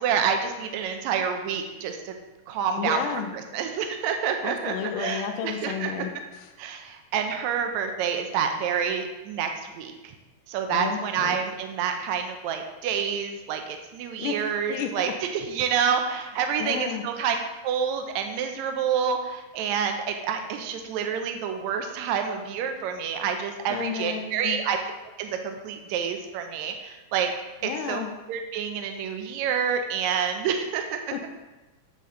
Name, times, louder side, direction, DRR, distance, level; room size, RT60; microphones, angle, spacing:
voice 1, 0.0-2.2 2.5-3.1 3.3-5.9 6.6-9.5 9.8-10.1 10.5-17.4 17.6-24.8 25.2-27.3 27.6-28.0 28.3-31.0, right 7 dB, 85° right, 5 dB, 1.6 m, -28 dB
voice 2, 2.8-3.3 4.4-6.5 10.7-11.4 14.2-14.9 16.6-17.0 23.7-24.6 27.6-28.1 31.1-31.3, left 7 dB, 80° left, 4 dB, 2.0 m, -32 dB
7.6 x 5.5 x 3.7 m, 1.1 s
omnidirectional pair, 3.9 m